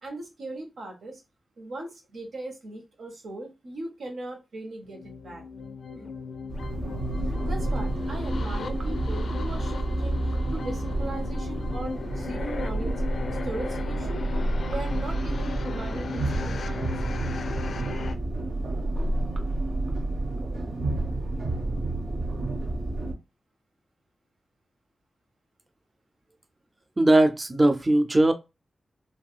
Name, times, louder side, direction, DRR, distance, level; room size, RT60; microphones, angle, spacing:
voice 1, 0.0-1.2 1.6-5.4 5.9-6.1 7.4-10.2 10.5-13.0 13.4-14.2 14.7-16.9, right 2 dB, 90° right, 1.0 m, -38 dB
sound 1, 4.8-18.2, left 5 dB, 80° left, 0.4 m, -37 dB
sound 2, 6.5-23.1, right 2 dB, 65° right, 0.7 m, -29 dB
voice 2, 27.0-28.3, right 1 dB, 30° right, 0.4 m, -19 dB
3.4 x 2.4 x 2.3 m
cardioid pair, 70°, 0 cm